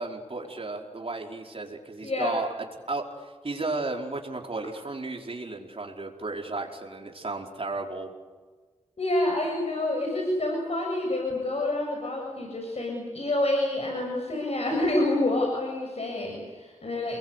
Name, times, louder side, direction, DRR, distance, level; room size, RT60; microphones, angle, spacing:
voice 1, 0.0-2.5 2.9-8.1, right 3 dB, 50° right, 0 dB, 4.8 m, -34 dB
voice 2, 2.0-2.3 9.0-17.2, left 1 dB, 55° left, 0 dB, 7.4 m, -28 dB
30.0 x 22.0 x 8.2 m, 1.4 s
wide cardioid pair, 95°, 13 cm